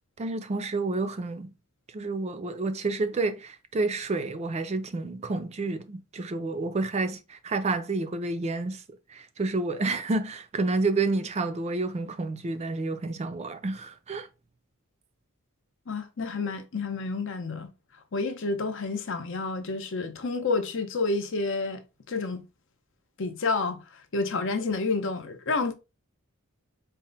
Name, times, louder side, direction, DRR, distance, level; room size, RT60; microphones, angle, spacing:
voice 1, 0.2-1.5 1.9-8.8 9.1-14.3, right 3 dB, 30° right, 0.4 m, -29 dB
voice 2, 15.9-17.7 18.1-21.8 22.1-22.4 23.2-23.8 24.1-25.7, left 3 dB, 60° left, 0.7 m, -29 dB
4.2 x 2.1 x 3.8 m
head